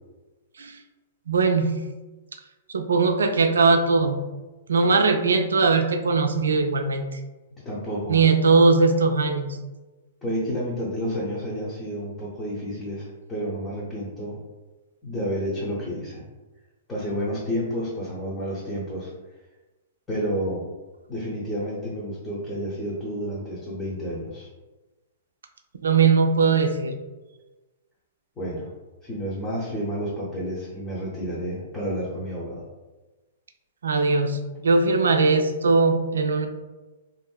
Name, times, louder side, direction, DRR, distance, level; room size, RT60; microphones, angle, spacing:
voice 1, 1.3-1.8 2.7-4.3 4.7-7.0 8.1-9.4 25.8-26.9 33.8-36.5, right 4 dB, 80° right, 6 dB, 0.3 m, -20 dB
voice 2, 7.6-8.2 10.2-14.4 15.0-16.2 16.9-19.1 20.1-20.6 21.1-24.5 28.4-28.7 29.0-32.6, equal, 20° left, -7 dB, 0.7 m, -30 dB
2.9 x 2.6 x 2.2 m, 1.2 s
hypercardioid pair, 115°, 0 cm